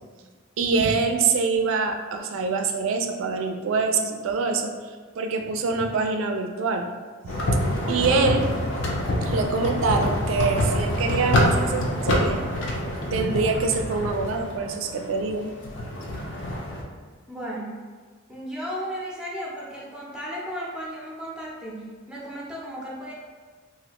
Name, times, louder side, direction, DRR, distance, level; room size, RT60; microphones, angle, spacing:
voice 1, 0.6-4.7 5.2-6.9 7.9-8.5 9.3-12.4 13.1-15.5, right 4 dB, 75° right, 4 dB, 0.3 m, -25 dB
sound 1, 7.3-16.8, left 1 dB, 60° left, 0.5 m, -26 dB
voice 2, 17.3-17.8 18.3-23.1, equal, 5° right, -5 dB, 0.5 m, -35 dB
3.1 x 2.4 x 2.9 m, 1.5 s
head